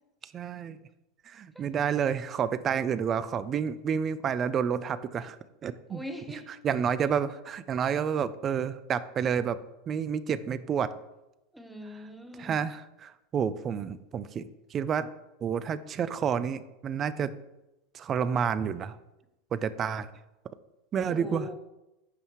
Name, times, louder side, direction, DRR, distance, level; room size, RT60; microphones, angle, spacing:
voice 1, 0.2-0.8 1.3-5.4 5.6-6.0 6.6-9.6 9.9-10.9 12.4-15.1 15.4-17.3 17.9-19.0 19.5-20.1 20.9-21.5, right 7 dB, 35° right, 15 dB, 0.5 m, -29 dB
voice 2, 5.9-6.5 7.0-7.1 11.5-12.6 21.1-21.6, equal, 5° right, 6 dB, 1.3 m, -41 dB
14.5 x 5.5 x 3.1 m, 0.96 s
hypercardioid pair, 100°, 0 cm